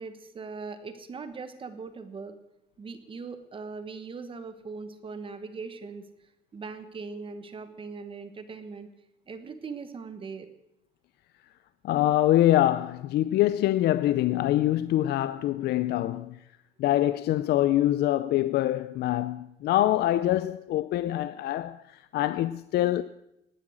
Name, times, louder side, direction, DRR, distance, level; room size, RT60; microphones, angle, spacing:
voice 1, 0.0-2.3 2.8-6.0 6.5-8.9 9.3-10.5, right 4 dB, 30° right, 1.2 m, -40 dB
voice 2, 11.8-16.4 16.8-23.0, left 14 dB, 65° left, 0.5 m, -25 dB
18.5 x 9.8 x 6.3 m
cardioid pair, 140°, 18 cm